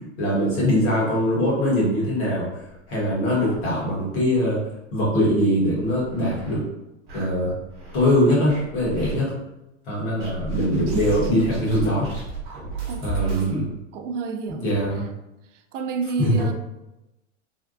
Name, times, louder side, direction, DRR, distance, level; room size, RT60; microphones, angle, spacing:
voice 1, 0.2-2.4 2.9-4.6 4.9-6.6 7.1-7.5 7.9-9.3 9.9-12.1 13.0-13.7 14.5-15.0 16.2-16.5, equal, 45° left, -5 dB, 1.4 m, -22 dB
sound 1, 2.6-4.1 4.5-4.6 4.9-5.0 5.6-6.6 7.1-8.1 8.5-9.2 10.2-13.5, right 4 dB, 40° right, 1.0 m, -34 dB
voice 2, 12.9-15.1 15.7-16.5, right 4 dB, 75° right, 6 dB, 0.5 m, -31 dB
3.3 x 2.2 x 2.5 m, 0.93 s
supercardioid pair, 170°, 37 cm